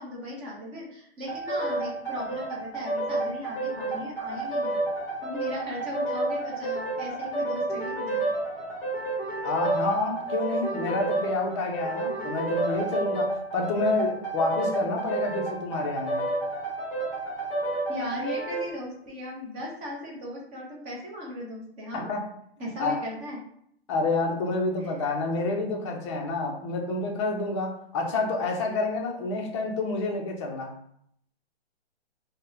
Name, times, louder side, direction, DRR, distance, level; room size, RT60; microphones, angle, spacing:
voice 1, 0.0-4.8 5.2-8.2 17.9-22.1 22.6-23.4 24.8-24.9, left 1 dB, 20° right, -3 dB, 0.7 m, -37 dB
sound 1, 1.3-18.7, right 2 dB, 5° left, 1.0 m, -30 dB
voice 2, 9.4-16.3 21.9-22.2 22.6-23.0 23.9-30.7, left 3 dB, 30° left, 0 dB, 0.5 m, -28 dB
3.5 x 2.1 x 2.6 m, 0.69 s
hypercardioid pair, 145°, 33 cm